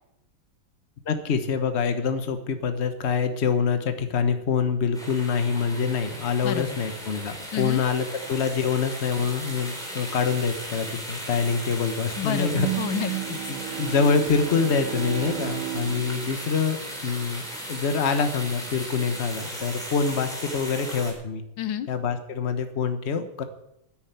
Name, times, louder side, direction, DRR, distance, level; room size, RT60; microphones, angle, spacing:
voice 1, 1.1-12.7 13.5-16.8 17.0-17.4 17.7-21.4 21.9-23.4, left 5 dB, 40° left, 8 dB, 1.3 m, -25 dB
sound 1, 4.9-21.1, equal, ahead, 3.8 m, -37 dB
voice 2, 7.5-7.8 12.2-13.4 21.6-21.9, left 10 dB, 75° left, 12 dB, 1.5 m, -29 dB
Bowed string instrument, 12.5-17.6, right 17 dB, 90° right, 1.5 m, -34 dB
10.5 x 9.8 x 9.3 m, 0.84 s
omnidirectional pair, 2.2 m